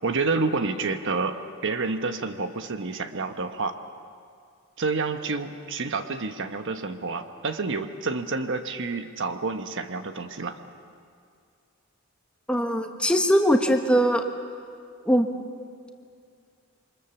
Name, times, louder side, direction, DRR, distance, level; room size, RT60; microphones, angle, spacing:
voice 1, 0.0-3.8 4.8-10.6, right 3 dB, 60° right, 8 dB, 1.1 m, -29 dB
voice 2, 12.5-14.2 15.1-15.3, equal, 5° left, 4 dB, 1.3 m, -21 dB
28.0 x 24.0 x 7.1 m, 2.3 s
head